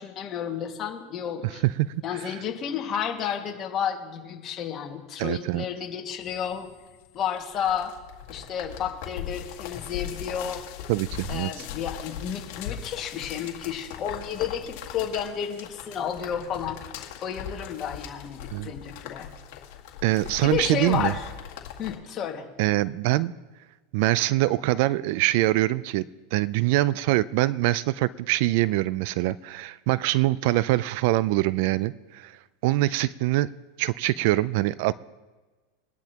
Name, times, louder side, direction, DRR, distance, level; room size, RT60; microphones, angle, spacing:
voice 1, 0.0-1.6 2.0-6.7 7.1-7.9 8.3-10.6 11.3-16.8 17.2-19.3 20.4-21.3 21.8-22.4, left 8 dB, 35° left, 1 dB, 2.0 m, -31 dB
voice 2, 5.2-5.7 10.9-11.7 18.5-18.7 20.0-21.1 22.6-23.3 23.9-26.1 26.3-32.3 32.6-33.5 33.8-34.9, right 17 dB, 60° right, 19 dB, 0.4 m, -24 dB
sound 1, 6.2-22.0, left 9 dB, 60° left, 1.9 m, -40 dB
21.5 x 10.5 x 3.0 m, 1.2 s
supercardioid pair, 125°, 0 cm